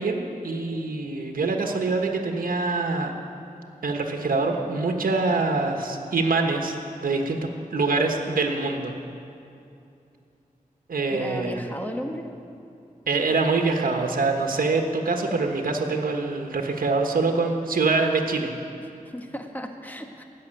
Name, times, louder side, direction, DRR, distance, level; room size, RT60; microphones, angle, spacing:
voice 1, 0.0-3.1 3.8-6.7 7.0-7.4 7.7-8.9 10.9-11.6 13.1-18.5, right 3 dB, 90° right, 3 dB, 1.2 m, -24 dB
voice 2, 11.1-12.3 18.8-20.2, equal, 10° left, 4 dB, 1.5 m, -35 dB
15.5 x 7.5 x 10.0 m, 2.6 s
wide cardioid pair, 75°, 14 cm